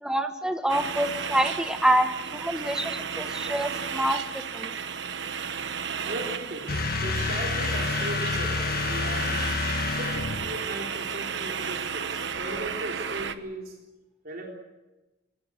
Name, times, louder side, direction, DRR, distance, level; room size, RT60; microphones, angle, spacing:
voice 1, 0.0-4.7, right 1 dB, 5° right, 7 dB, 1.4 m, -27 dB
sound 1, 0.7-13.4, right 6 dB, 70° right, 1.1 m, -33 dB
voice 2, 6.0-9.4 9.9-13.8 14.2-14.5, right 1 dB, 55° right, -1 dB, 3.7 m, -37 dB
sound 2, 6.7-10.6, left 4 dB, 55° left, 1.3 m, -28 dB
22.5 x 18.5 x 8.2 m, 1.1 s
head